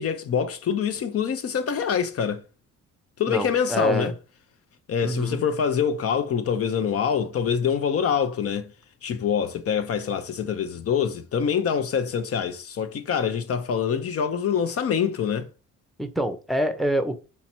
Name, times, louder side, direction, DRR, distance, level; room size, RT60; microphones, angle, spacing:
voice 1, 0.0-2.4 3.2-4.1 4.9-8.7 9.0-15.5, left 7 dB, 50° left, 0.6 m, -25 dB
voice 2, 3.3-4.1 5.0-5.4 16.0-17.1, equal, ahead, 0.7 m, -26 dB
4.2 x 2.9 x 4.3 m
cardioid pair, 90°, 30 cm